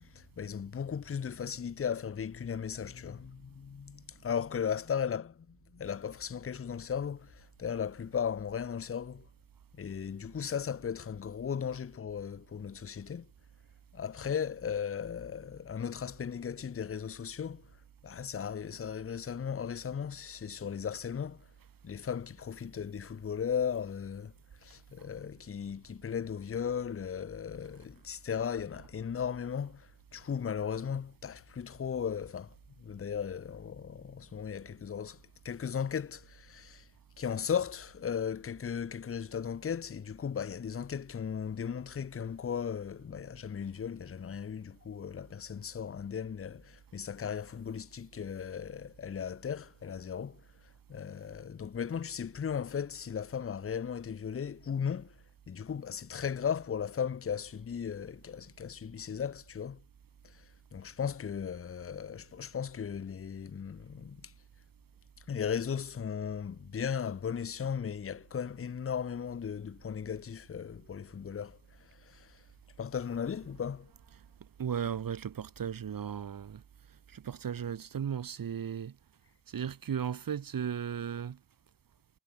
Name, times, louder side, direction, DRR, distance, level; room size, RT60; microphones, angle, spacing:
voice 1, 0.0-9.3 9.7-13.3 13.9-17.7 18.0-21.5 21.8-24.3 24.6-36.9 37.2-50.4 50.9-55.2 55.5-59.8 60.2-64.3 65.2-72.4 72.8-73.9, left 7 dB, 40° left, 0.7 m, -36 dB
sound 1, 73.1-77.6, right 8 dB, 85° right, 3.0 m, -65 dB
voice 2, 74.6-76.6 77.1-78.9 79.5-81.4, right 8 dB, 65° right, 1.4 m, -36 dB
wide cardioid pair, 90°, 36 cm